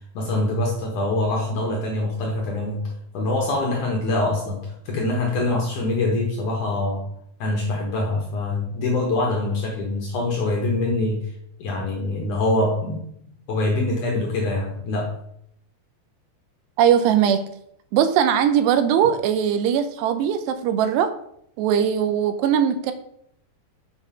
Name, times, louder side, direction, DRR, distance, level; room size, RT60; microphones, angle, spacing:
voice 1, 0.1-7.1 7.4-11.3 11.6-13.0 13.5-15.2, left 2 dB, 65° left, -1 dB, 2.1 m, -24 dB
voice 2, 16.8-17.4 17.9-21.1 21.6-22.9, right 9 dB, 80° right, 9 dB, 2.7 m, -20 dB
7.2 x 5.8 x 5.6 m, 0.71 s
omnidirectional pair, 5.0 m